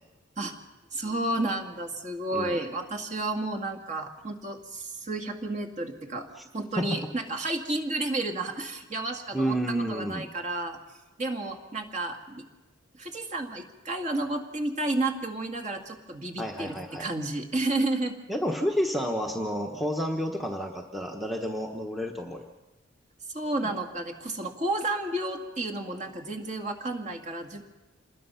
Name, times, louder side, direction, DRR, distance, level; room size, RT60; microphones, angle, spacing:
voice 1, 0.9-6.3 6.5-9.6 9.9-10.8 11.2-12.4 12.9-18.2 23.3-27.6, right 2 dB, 35° right, 4 dB, 2.1 m, -31 dB
voice 2, 9.3-10.3 16.4-17.1 18.3-22.5, equal, ahead, 0 dB, 1.1 m, -30 dB
27.5 x 21.0 x 5.7 m, 1.1 s
head